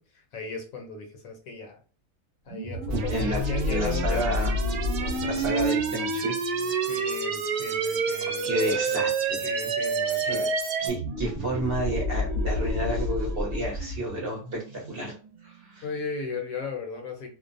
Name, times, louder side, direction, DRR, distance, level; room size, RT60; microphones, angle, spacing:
voice 1, 0.0-1.8 2.5-4.2 5.0-5.4 6.9-9.0 9.4-10.5 15.8-17.3, left 4 dB, 70° left, 2 dB, 1.0 m, -36 dB
sound 1, 2.5-7.8 10.8-16.1, left 2 dB, 70° right, 1.0 m, -31 dB
voice 2, 2.9-3.4 3.7-4.5 5.2-6.3 6.7-7.1 8.4-9.5 10.1-10.4 10.8-15.1 15.4-15.8, equal, 50° right, -2 dB, 0.9 m, -31 dB
sound 2, 2.9-10.9, right 5 dB, 90° right, 1.1 m, -28 dB
2.5 x 2.1 x 2.5 m, 0.39 s
omnidirectional pair, 1.5 m